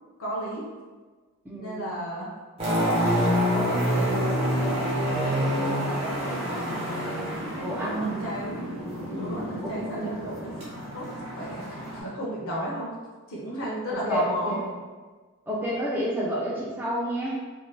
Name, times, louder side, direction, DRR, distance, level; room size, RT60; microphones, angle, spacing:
voice 1, 0.2-0.7 1.6-2.3 2.6-7.0 7.6-8.7 9.1-10.5 10.9-11.7 12.0-12.9 13.3-14.6, right 1 dB, 60° left, -4 dB, 0.6 m, -34 dB
voice 2, 1.5-2.0 7.6-8.2 9.0-10.2 13.9-14.7 15.5-17.4, equal, 10° right, -6 dB, 0.3 m, -30 dB
sound 1, 2.6-12.0, equal, 25° right, 0.7 m, -28 dB
2.6 x 2.2 x 3.1 m, 1.4 s
head